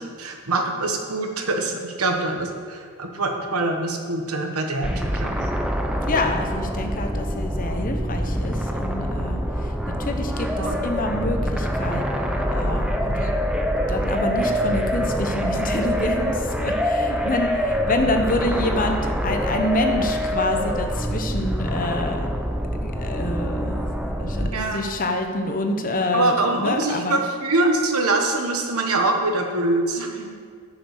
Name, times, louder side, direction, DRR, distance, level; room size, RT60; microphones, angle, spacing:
voice 1, 0.0-5.4 10.6-10.9 24.4-24.9 26.1-30.3, right 2 dB, 90° right, 3 dB, 1.3 m, -24 dB
sound 1, 4.8-24.5, equal, 5° right, 0.6 m, -25 dB
voice 2, 6.1-9.4 10.0-13.3 13.9-22.3 22.8-23.9 24.2-27.2, left 2 dB, 40° left, 5 dB, 0.9 m, -27 dB
10.5 x 6.0 x 6.6 m, 2.1 s
head